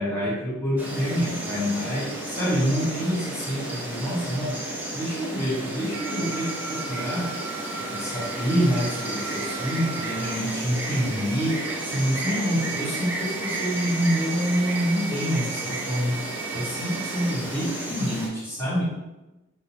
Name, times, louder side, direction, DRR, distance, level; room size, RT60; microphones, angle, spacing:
voice 1, 0.0-4.6 4.9-7.3 7.9-16.2 16.5-18.8, equal, 10° left, -9 dB, 1.2 m, -27 dB
Insect, 0.8-18.3, right 1 dB, 10° right, 0.5 m, -33 dB
sound 1, 5.9-17.4, right 7 dB, 75° right, 0.5 m, -37 dB
3.0 x 2.2 x 4.2 m, 1.0 s
head